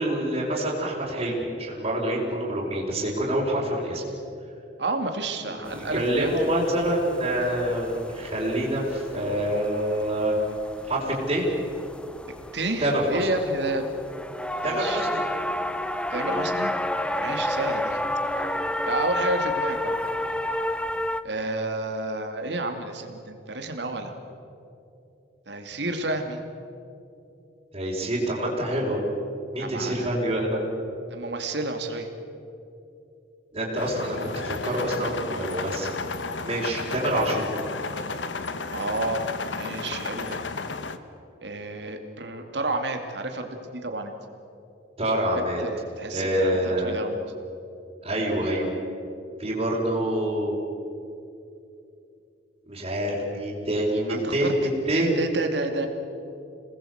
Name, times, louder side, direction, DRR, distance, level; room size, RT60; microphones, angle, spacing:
voice 1, 0.0-4.0 5.5-10.4 10.9-11.5 12.8-13.2 14.6-15.2 27.7-29.0 29.5-30.6 33.5-35.9 36.4-37.5 45.0-45.6 46.1-47.0 48.0-48.7 49.4-50.6 52.7-55.1, right 1 dB, 30° right, -7 dB, 5.0 m, -26 dB
voice 2, 4.8-6.6 12.5-13.9 14.6-15.0 16.1-16.7 17.2-18.0 18.8-20.0 21.2-24.1 25.5-26.4 29.6-30.1 31.1-32.1 37.3-37.5 38.7-39.3 39.5-40.4 41.4-44.1 45.6-47.2 54.1-55.9, right 2 dB, 65° right, 5 dB, 2.6 m, -30 dB
sound 1, 5.7-21.2, left 1 dB, 5° left, 0.6 m, -31 dB
sound 2, 33.8-41.0, left 4 dB, 80° left, 1.2 m, -33 dB
27.5 x 19.5 x 8.0 m, 2.7 s
head